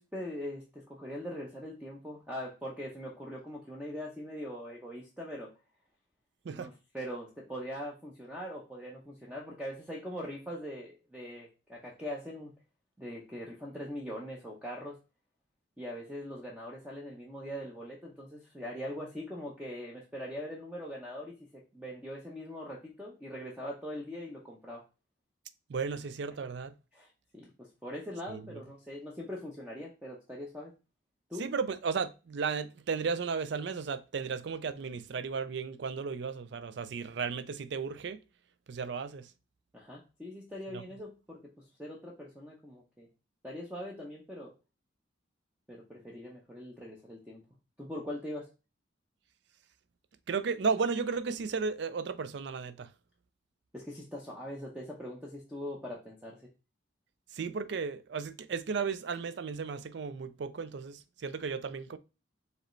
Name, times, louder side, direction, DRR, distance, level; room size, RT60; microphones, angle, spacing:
voice 1, 0.0-5.5 6.5-12.5 13.0-15.0 15.8-21.3 21.7-24.8 26.9-30.7 31.3-31.5 39.7-41.4 41.8-43.1 43.4-44.5 45.7-47.4 47.8-48.5 53.7-56.5, equal, 5° right, 0.7 m, -42 dB
voice 2, 25.7-26.7 28.3-28.6 31.4-38.2 38.7-39.3 40.7-40.8 50.3-52.9 57.3-62.0, right 5 dB, 60° right, 0.4 m, -34 dB
4.8 x 3.2 x 3.1 m
head